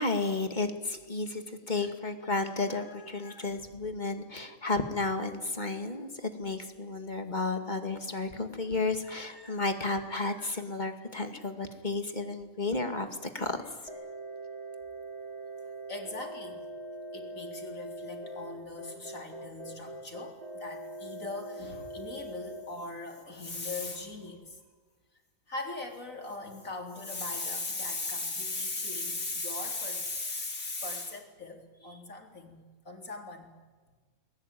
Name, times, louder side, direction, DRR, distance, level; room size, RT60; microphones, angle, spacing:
voice 1, 0.0-13.1 13.3-13.6, left 3 dB, 35° left, 6 dB, 2.4 m, -32 dB
sound 1, 13.9-22.6, right 1 dB, 30° right, 3.6 m, -42 dB
voice 2, 15.9-16.7 17.1-24.6 25.5-33.5, left 3 dB, 75° left, 3 dB, 4.2 m, -38 dB
29.5 x 21.0 x 9.3 m, 1.4 s
omnidirectional pair, 1.4 m